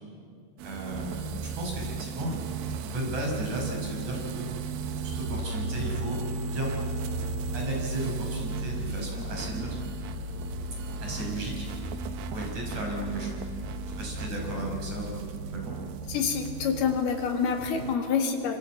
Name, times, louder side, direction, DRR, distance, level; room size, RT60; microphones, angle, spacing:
voice 1, 0.6-2.4 2.8-4.5 4.9-6.7 7.5-9.8 11.0-11.7 12.3-13.4 14.0-15.7, right 2 dB, 50° right, 0 dB, 6.7 m, -34 dB
sound 1, 0.6-18.0, right 6 dB, 75° right, 2.9 m, -36 dB
sound 2, 5.2-15.2, left 1 dB, 30° right, 3.3 m, -37 dB
voice 2, 16.1-18.6, left 6 dB, 90° left, 3 dB, 4.3 m, -27 dB
27.0 x 25.0 x 8.7 m, 2.3 s
omnidirectional pair, 4.4 m